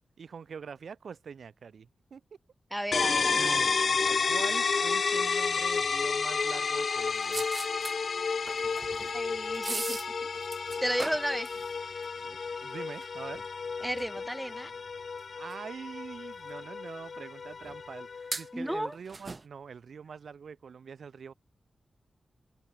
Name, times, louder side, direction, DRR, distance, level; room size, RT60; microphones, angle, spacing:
voice 1, 0.2-2.2 3.3-7.5 12.6-13.4 15.4-21.3, right 6 dB, 70° right, 6.4 m, -44 dB
voice 2, 2.7-3.7 9.1-10.1 10.8-11.5 13.8-14.7 18.5-19.0, equal, 5° right, 3.2 m, -33 dB
sound 1, 2.9-18.5, left 5 dB, 55° left, 1.6 m, -31 dB
sound 2, 6.9-15.2 15.5-15.6 16.5-16.7 17.6-17.9 18.3-19.5, right 3 dB, 30° right, 2.9 m, -41 dB
wide cardioid pair, 130°, 0 cm